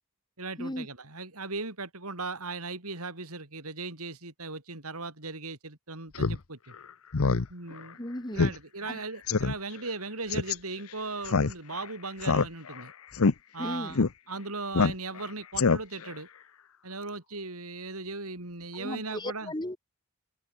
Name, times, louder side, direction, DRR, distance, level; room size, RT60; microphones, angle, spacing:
voice 1, 0.4-6.7 7.5-8.0 8.3-12.9 13.5-16.3 16.8-19.5, right 3 dB, 85° right, 5.9 m, -38 dB
Speech synthesizer, 6.2-6.4 6.7-6.8 7.1-7.5 7.8-7.9 8.4-8.6 8.9-9.0 9.3-9.5 10.3-10.6 11.3-11.8 12.2-12.8 13.1-13.3 14.0-14.1 14.7-15.2 15.6-16.1, left 4 dB, 70° left, 0.8 m, -24 dB
voice 2, 8.0-8.5 8.9-9.0 13.6-14.0 18.7-19.8, left 1 dB, 20° left, 1.6 m, -36 dB
open air
head